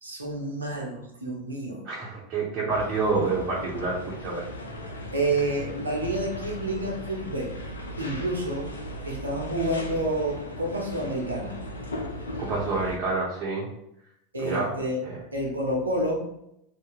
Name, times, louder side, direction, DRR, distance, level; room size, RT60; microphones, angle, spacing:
voice 1, 0.0-1.8 5.1-7.5 8.0-8.7 9.1-11.6 14.3-15.0 15.3-16.3, right 1 dB, 85° right, -1 dB, 0.7 m, -29 dB
voice 2, 1.8-4.4 12.4-13.7 14.4-14.7 15.0-15.2, right 3 dB, 40° right, -6 dB, 0.9 m, -28 dB
sound 1, 2.7-13.0, equal, 80° left, 0.4 m, -37 dB
2.6 x 2.2 x 4.0 m, 0.80 s
figure-of-eight pair, 85°, 0 cm